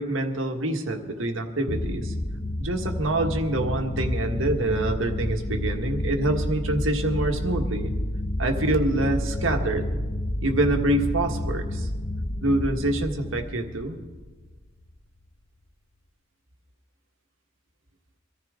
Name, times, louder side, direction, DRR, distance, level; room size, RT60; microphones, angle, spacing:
voice 1, 0.0-2.1 2.6-7.9 8.4-10.0 10.4-11.9 12.4-14.0, right 1 dB, 70° right, 4 dB, 1.6 m, -26 dB
sound 1, 1.7-14.6, left 1 dB, 30° left, 0.7 m, -30 dB
24.0 x 14.5 x 3.8 m, 1.4 s
head